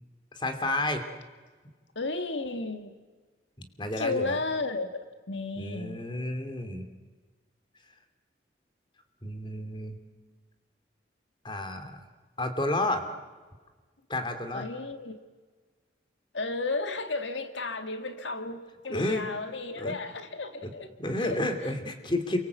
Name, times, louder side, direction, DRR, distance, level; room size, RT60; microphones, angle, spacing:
voice 1, 0.3-1.1 3.6-4.4 5.6-6.8 9.2-10.0 11.4-11.9 12.4-13.1 14.1-14.7 18.9-19.2 19.8-20.0 20.6-20.7 21.0-22.4, left 1 dB, 25° left, 7 dB, 2.7 m, -31 dB
voice 2, 1.9-2.9 4.0-4.9 5.3-6.0 14.5-15.2 16.3-21.7, left 3 dB, 85° left, 8 dB, 1.7 m, -33 dB
29.0 x 23.5 x 8.2 m, 1.4 s
head